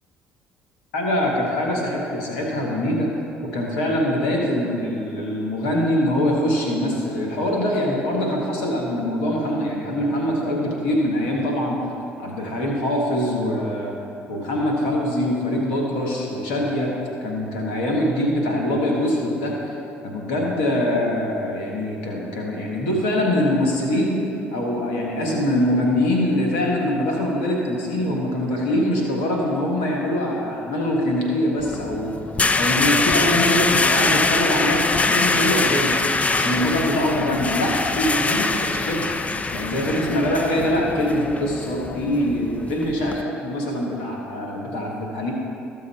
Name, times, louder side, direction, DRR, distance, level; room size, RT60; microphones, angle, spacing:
voice 1, 0.9-3.1 3.4-11.8 12.2-13.9 14.3-16.9 17.2-19.7 20.0-24.2 24.5-32.2 32.5-36.0 36.3-39.1 39.5-45.3, left 1 dB, 85° left, -1 dB, 1.6 m, -23 dB
sound 1, 31.6-43.2, left 3 dB, 25° left, 0.6 m, -23 dB
14.0 x 6.4 x 4.3 m, 2.9 s
hypercardioid pair, 60°, 6 cm